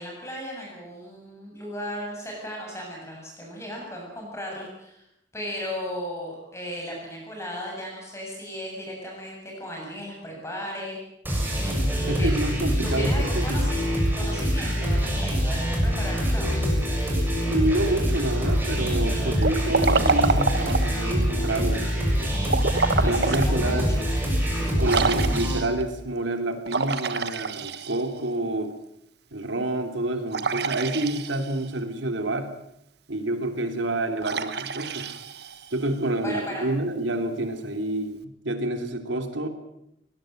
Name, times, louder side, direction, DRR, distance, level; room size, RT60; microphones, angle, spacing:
voice 1, 0.0-5.0 5.3-11.0 12.0-12.4 12.8-16.6 22.8-24.2 36.2-36.6, equal, 15° left, -2 dB, 7.2 m, -36 dB
sound 1, 11.2-25.6, equal, 10° right, 6.9 m, -25 dB
voice 2, 12.0-13.6 17.5-21.9 22.2-22.3 23.0-23.9 24.6-28.8 29.3-32.5 33.1-35.1 35.7-39.5, right 1 dB, 80° right, 6 dB, 3.2 m, -28 dB
Liquid, 19.4-21.0 22.4-23.5 24.0-24.1 24.8-25.8 26.7-28.3 30.3-31.7 34.2-35.9, right 4 dB, 60° right, 1.4 m, -27 dB
22.5 x 20.0 x 7.8 m, 0.81 s
head